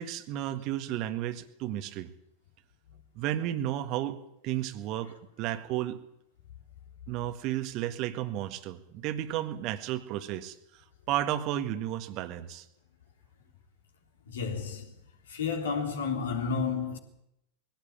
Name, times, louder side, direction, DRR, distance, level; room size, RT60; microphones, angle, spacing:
voice 1, 0.0-2.1 3.2-4.2 4.4-6.0 7.1-10.8 11.1-12.7, right 12 dB, 40° right, 1.7 m, -33 dB
voice 2, 14.3-14.9 15.3-17.0, left 5 dB, 65° left, 3.5 m, -31 dB
22.0 x 16.5 x 8.8 m
figure-of-eight pair, 90°, 0 cm